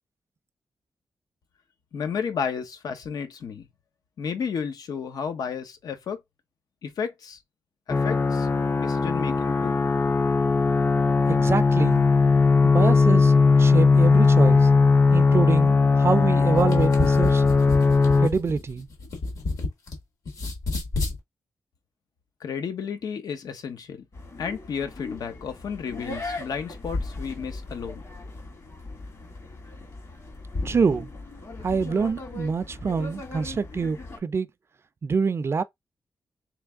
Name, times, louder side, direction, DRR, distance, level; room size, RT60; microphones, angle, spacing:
voice 1, 1.9-3.7 4.2-6.2 6.8-7.4 7.9-8.5 8.8-9.8 22.4-24.0 24.4-28.0, left 6 dB, 80° left, 0.9 m, -32 dB
sound 1, 7.9-18.3, left 4 dB, 30° left, 0.5 m, -19 dB
voice 2, 11.3-12.1 12.6-13.3 13.6-14.7 15.1-17.4 18.2-18.9 30.6-31.1 31.6-34.5 35.0-35.6, right 5 dB, 40° right, 0.4 m, -26 dB
sound 2, 16.6-20.0 20.3-21.2, left 3 dB, 65° left, 1.8 m, -30 dB
sound 3, 24.1-34.2, left 2 dB, 45° left, 1.8 m, -37 dB
3.3 x 3.3 x 3.5 m
wide cardioid pair, 110°, 6 cm